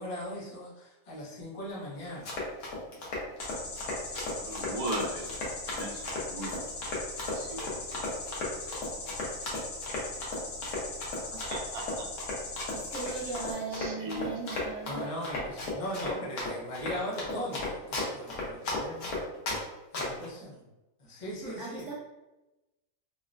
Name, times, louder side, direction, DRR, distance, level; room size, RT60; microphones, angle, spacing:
voice 1, 0.0-2.3 14.9-19.1 19.9-20.6 21.0-21.9, equal, 30° left, -5 dB, 0.7 m, -39 dB
Run, 2.0-19.6 19.9-20.3, left 2 dB, 85° left, 1.4 m, -35 dB
sound 1, 3.4-13.5, left 3 dB, 65° left, 0.9 m, -40 dB
voice 2, 4.4-5.3 5.7-6.6 7.2-7.8 11.5-12.1 13.0-13.1 13.7-14.7, right 1 dB, 80° right, 0 dB, 1.2 m, -38 dB
voice 3, 12.7-15.1 21.4-21.9, right 4 dB, 65° right, -6 dB, 0.9 m, -38 dB
3.5 x 2.1 x 2.5 m, 1.0 s
omnidirectional pair, 1.5 m